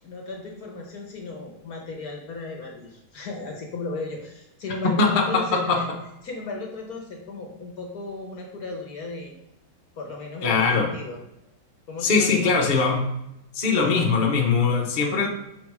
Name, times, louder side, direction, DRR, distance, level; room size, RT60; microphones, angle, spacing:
voice 1, 0.0-5.9 6.2-9.4 10.0-11.2 11.9-12.9, left 3 dB, 55° left, 1 dB, 1.3 m, -35 dB
voice 2, 5.0-5.8 10.4-10.9 12.0-13.1 13.5-15.3, left 4 dB, 35° left, 0 dB, 0.9 m, -21 dB
6.8 x 4.7 x 4.8 m, 0.86 s
omnidirectional pair, 2.2 m